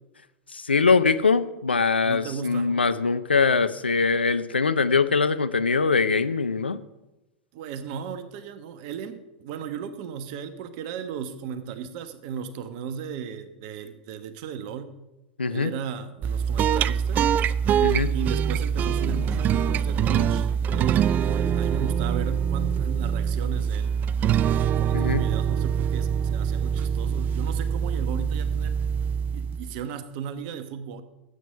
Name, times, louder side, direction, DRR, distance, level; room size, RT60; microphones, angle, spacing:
voice 1, 0.5-6.8 15.4-15.7 17.8-18.1 24.9-25.2, left 4 dB, 85° left, 12 dB, 0.6 m, -22 dB
voice 2, 2.0-2.7 7.5-14.9 15.5-17.3 18.1-23.9 24.5-28.9 29.3-31.0, right 7 dB, 50° right, 11 dB, 1.2 m, -36 dB
sound 1, 16.2-29.8, right 8 dB, 30° right, 0.4 m, -24 dB
sound 2, 18.8-19.5 19.9-22.6, right 1 dB, ahead, 3.2 m, -40 dB
13.0 x 8.0 x 5.7 m, 1.0 s
figure-of-eight pair, 90°, 6 cm